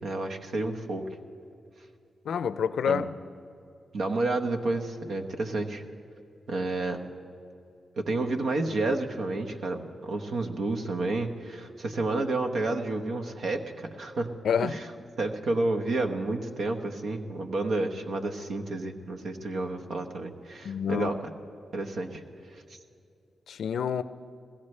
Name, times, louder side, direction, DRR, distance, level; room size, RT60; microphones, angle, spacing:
voice 1, 0.0-1.1 2.9-3.1 3.9-5.8 6.5-7.0 8.0-14.9 15.2-21.2 21.7-22.2 22.5-22.6, right 2 dB, 75° right, 1.1 m, -30 dB
voice 2, 2.3-3.1 14.4-14.8 20.6-21.1 23.5-24.0, left 7 dB, 80° left, 0.4 m, -27 dB
21.0 x 16.5 x 3.3 m
cardioid pair, 60°, 0 cm